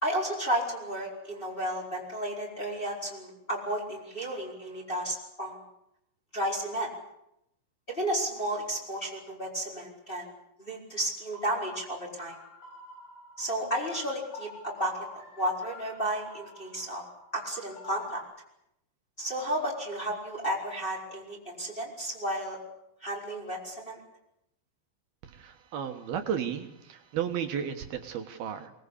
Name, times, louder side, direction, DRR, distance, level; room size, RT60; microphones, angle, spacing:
voice 1, 0.0-5.6 6.3-6.9 7.9-10.3 10.6-12.4 13.4-17.0 17.3-18.2 19.2-22.6 23.0-24.0, right 1 dB, 10° left, -2 dB, 4.5 m, -33 dB
sound 1, 11.3-18.2, left 2 dB, 75° left, 7.5 m, -49 dB
voice 2, 25.2-28.7, right 8 dB, 65° right, 6 dB, 2.8 m, -34 dB
23.5 x 21.0 x 8.5 m, 0.81 s
omnidirectional pair, 5.4 m